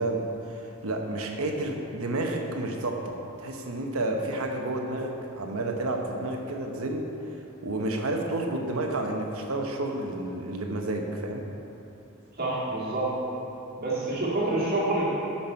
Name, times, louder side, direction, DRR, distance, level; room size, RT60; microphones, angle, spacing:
voice 1, 0.0-7.1 7.6-11.5, right 2 dB, 75° right, 2 dB, 1.0 m, -30 dB
voice 2, 12.3-13.2 13.8-15.1, right 2 dB, 45° right, -8 dB, 2.0 m, -27 dB
11.5 x 5.8 x 4.4 m, 2.9 s
head